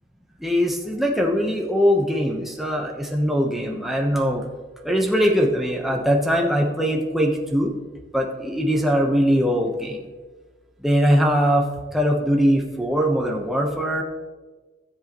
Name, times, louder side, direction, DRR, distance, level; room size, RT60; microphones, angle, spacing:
voice 1, 0.4-4.4 4.8-7.7 8.1-10.0 10.8-11.6 11.9-14.0, equal, ahead, 0 dB, 1.0 m, -21 dB
16.0 x 7.5 x 3.0 m, 1.3 s
head